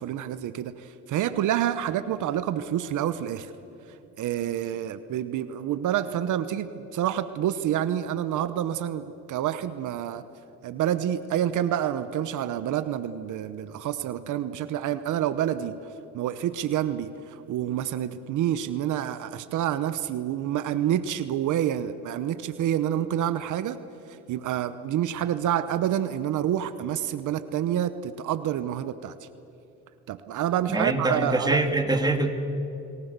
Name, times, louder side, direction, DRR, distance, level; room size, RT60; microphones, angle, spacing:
voice 1, 0.0-3.5 4.2-10.2 10.6-15.8 16.1-23.8 24.1-29.3 30.1-31.6, right 11 dB, 80° right, 12 dB, 1.0 m, -28 dB
voice 2, 30.7-32.3, right 2 dB, 15° right, 5 dB, 2.4 m, -24 dB
29.5 x 19.5 x 6.8 m, 3.0 s
cardioid pair, 90°, 30 cm